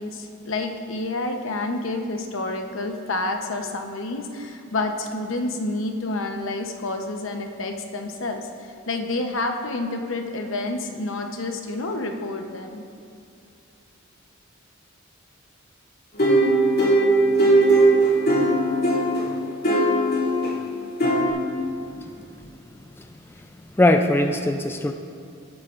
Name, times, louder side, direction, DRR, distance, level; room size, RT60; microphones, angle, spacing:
voice 1, 0.0-12.8, left 2 dB, 70° left, 4 dB, 0.9 m, -29 dB
sound 1, 16.2-19.2 19.6-20.5 21.0-21.3, right 1 dB, 50° left, 2.8 m, -18 dB
voice 2, 23.8-24.9, left 1 dB, 10° left, 5 dB, 0.4 m, -20 dB
18.5 x 8.3 x 2.5 m, 2.5 s
head